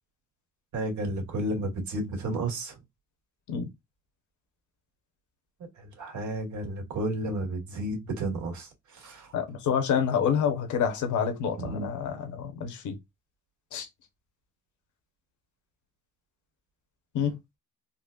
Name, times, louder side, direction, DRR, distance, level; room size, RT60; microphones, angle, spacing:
voice 1, 0.7-2.8 5.8-9.3 11.6-11.9, right 1 dB, 70° right, 1.8 m, -32 dB
voice 2, 9.3-13.0 13.7-13.9 17.1-17.3, left 7 dB, 75° left, 1.1 m, -28 dB
4.1 x 2.4 x 2.4 m
cardioid pair, 90°, 30 cm